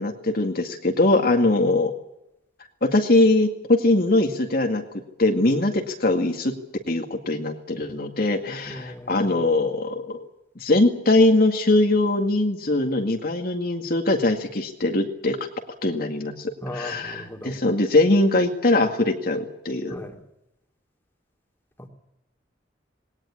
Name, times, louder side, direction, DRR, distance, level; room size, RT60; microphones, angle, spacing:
voice 1, 0.0-1.9 2.8-4.8 5.2-6.6 6.9-10.2 10.6-15.4 15.8-20.0, left 2 dB, 55° left, 3 dB, 2.1 m, -21 dB
voice 2, 8.6-9.4 16.6-17.5 19.9-20.2 21.8-21.9, left 1 dB, 10° left, 2 dB, 2.9 m, -37 dB
20.0 x 18.5 x 9.9 m, 0.88 s
head